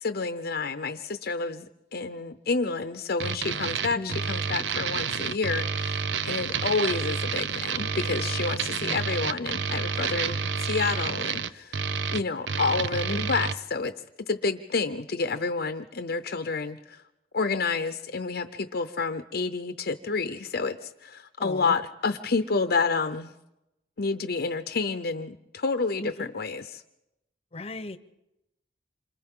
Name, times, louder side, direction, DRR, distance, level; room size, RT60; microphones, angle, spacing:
voice 1, 0.0-1.7 1.9-11.8 12.1-13.9 14.3-17.0 17.3-23.3 24.0-26.8, left 4 dB, 60° left, 8 dB, 0.7 m, -29 dB
sound 1, 3.2-13.6, right 6 dB, 85° right, 0.6 m, -29 dB
voice 2, 3.9-4.3 8.8-9.0 13.1-13.3 21.4-21.7 26.0-26.3 27.5-28.0, left 2 dB, 35° left, 12 dB, 0.9 m, -37 dB
28.0 x 26.0 x 3.8 m, 0.90 s
head